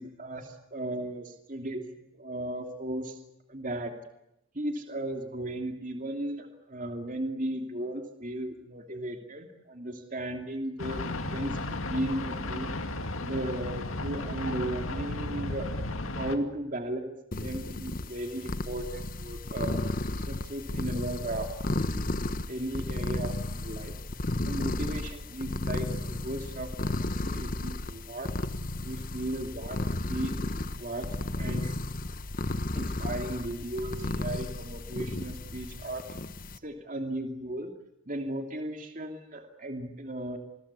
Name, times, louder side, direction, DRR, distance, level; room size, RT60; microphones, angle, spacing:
voice 1, 0.0-1.8 2.1-3.2 3.5-3.9 4.5-12.7 13.2-15.7 16.2-19.8 20.2-21.5 21.7-21.8 22.5-23.9 24.5-28.3 28.8-29.8 30.1-30.3 30.8-31.8 32.7-36.0 36.6-37.7 38.1-40.4, right 1 dB, 40° right, 4 dB, 2.8 m, -36 dB
sound 1, 10.8-16.4, left 2 dB, 85° left, 2.3 m, -34 dB
sound 2, 17.3-36.6, left 2 dB, 40° left, 1.1 m, -33 dB
28.0 x 21.0 x 8.4 m, 0.86 s
head